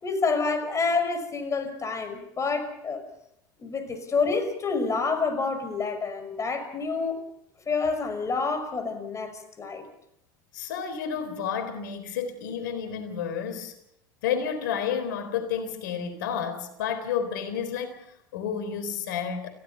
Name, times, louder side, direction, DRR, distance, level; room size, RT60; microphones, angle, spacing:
voice 1, 0.0-3.0 3.6-7.2 7.7-9.9, left 4 dB, 30° left, 8 dB, 5.7 m, -28 dB
voice 2, 10.5-13.7 14.2-19.5, left 7 dB, 75° left, 9 dB, 3.9 m, -31 dB
29.5 x 16.5 x 5.7 m, 0.75 s
hypercardioid pair, 75°, 11 cm